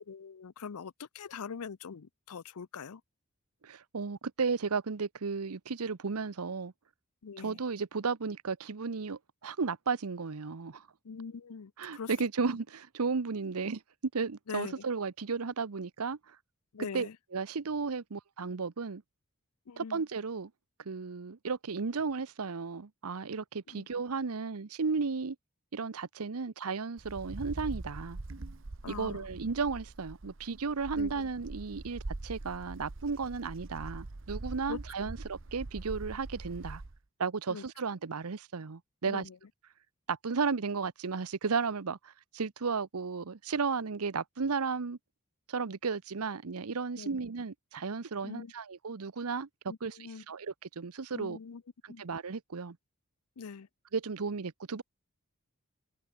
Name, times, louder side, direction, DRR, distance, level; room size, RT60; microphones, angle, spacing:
voice 1, 0.0-3.0 7.2-7.6 11.0-12.1 14.5-14.8 16.7-17.2 19.7-20.0 23.7-23.9 28.8-29.3 31.0-31.3 34.7-34.8 37.5-37.6 39.1-39.4 47.0-47.2 48.2-48.5 49.7-50.2 51.1-51.6 51.9-52.0 53.4-53.7, left 6 dB, 85° left, 0.6 m, -43 dB
voice 2, 3.6-6.7 7.4-10.8 11.8-13.8 14.1-16.4 16.9-19.0 19.8-20.5 20.8-25.4 25.7-28.2 28.9-36.8 37.2-39.3 40.1-45.0 45.5-49.5 49.8-50.0 50.3-51.4 52.0-52.8 53.9-54.8, right 5 dB, 85° right, 0.8 m, -34 dB
Wind, 27.0-37.0, right 2 dB, 60° right, 0.9 m, -43 dB
head